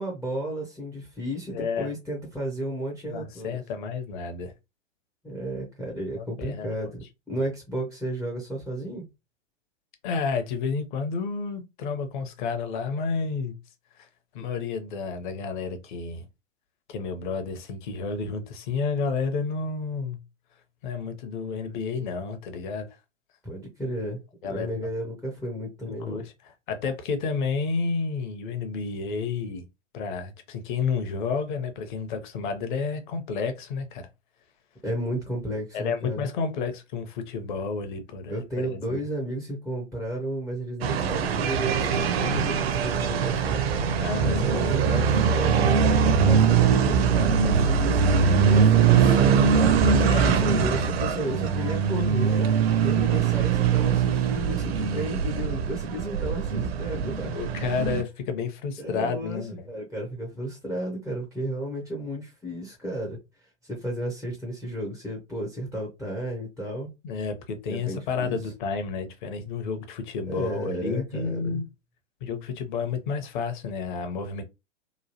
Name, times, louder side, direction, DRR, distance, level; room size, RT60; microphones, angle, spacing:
voice 1, 0.0-3.6 5.2-9.0 23.4-24.2 24.5-26.2 34.8-36.3 38.3-43.9 44.2-52.5 52.8-57.4 57.8-58.0 58.8-63.2 63.6-66.9 67.7-68.4 70.3-71.6, right 1 dB, ahead, 0.4 m, -33 dB
voice 2, 1.5-1.9 3.0-4.5 6.2-6.9 10.0-13.5 14.0-14.1 14.3-16.2 16.9-20.2 20.8-22.9 24.4-24.9 26.0-26.3 26.7-29.6 29.9-34.1 35.7-39.1 44.0-44.4 50.0-50.5 57.3-59.7 67.0-71.6 72.2-74.4, left 5 dB, 40° left, 0.7 m, -31 dB
sound 1, 40.8-58.0, right 6 dB, 55° right, 0.6 m, -22 dB
3.0 x 2.2 x 2.7 m
figure-of-eight pair, 110°, 37 cm